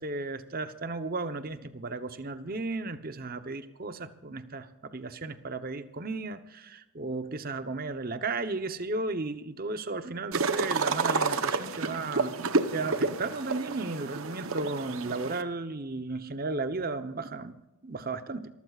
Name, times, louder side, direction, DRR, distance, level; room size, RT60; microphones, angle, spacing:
voice 1, 0.0-12.3 12.7-17.5 17.8-18.5, right 3 dB, 40° right, 10 dB, 0.9 m, -34 dB
sound 1, 10.3-15.4, right 4 dB, 70° right, 0.9 m, -30 dB
27.0 x 14.5 x 2.4 m, 0.98 s
head